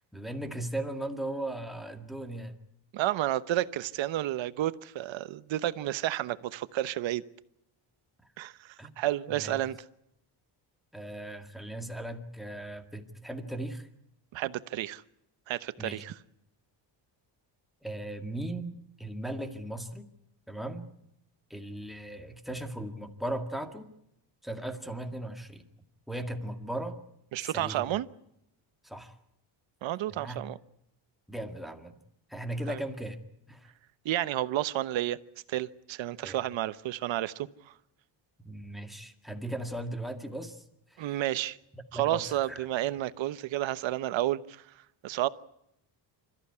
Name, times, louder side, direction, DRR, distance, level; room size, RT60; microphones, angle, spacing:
voice 1, 0.1-2.6 8.8-8.9 9.3-9.6 10.9-13.9 15.8-16.0 17.8-20.1 20.5-20.9 21.5-23.9 24.4-25.6 26.1-27.0 27.4-28.0 28.8-29.1 30.1-30.4 31.3-32.0 32.3-33.2 33.5-33.7 36.2-36.4 38.4-40.6 40.9-41.1 41.7-42.7, right 1 dB, ahead, 2.0 m, -37 dB
voice 2, 2.9-7.2 8.4-9.8 14.3-15.0 15.5-16.1 27.3-28.1 29.8-30.6 32.7-32.8 34.0-35.2 35.5-37.7 41.0-41.6 41.9-44.6 45.0-45.3, right 14 dB, 75° right, 1.1 m, -31 dB
27.5 x 14.0 x 9.6 m
cardioid pair, 150°, 46 cm